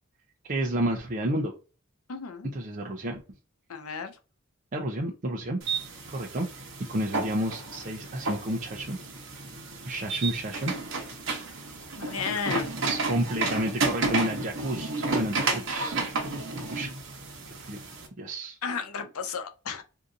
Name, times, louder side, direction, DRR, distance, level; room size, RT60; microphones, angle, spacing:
voice 1, 0.5-1.5 2.5-3.2 4.7-5.6 6.1-6.5 6.9-9.0 9.8-10.7 12.8-16.0 16.7-16.9 17.5-17.8 18.2-18.6, right 1 dB, 40° right, 0.5 m, -30 dB
voice 2, 2.1-2.5 3.7-4.2 12.0-12.8 18.6-19.8, left 6 dB, 90° left, 0.6 m, -33 dB
sound 1, 5.6-18.1, right 3 dB, 60° right, 1.0 m, -32 dB
2.7 x 2.5 x 3.6 m
head